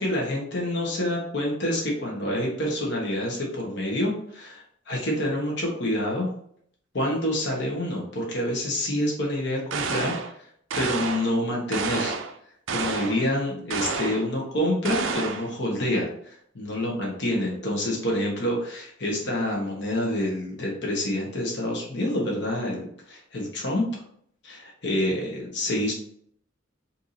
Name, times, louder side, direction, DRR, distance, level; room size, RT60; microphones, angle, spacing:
voice 1, 0.0-6.3 6.9-10.5 10.7-12.2 12.7-23.9 24.4-25.9, left 1 dB, 60° left, -2 dB, 1.1 m, -27 dB
sound 1, 9.7-10.3 10.7-11.3 11.7-12.3 12.7-13.2 13.7-14.3 14.8-15.5, right 5 dB, 80° right, 0.5 m, -29 dB
4.5 x 2.7 x 2.6 m, 0.65 s
head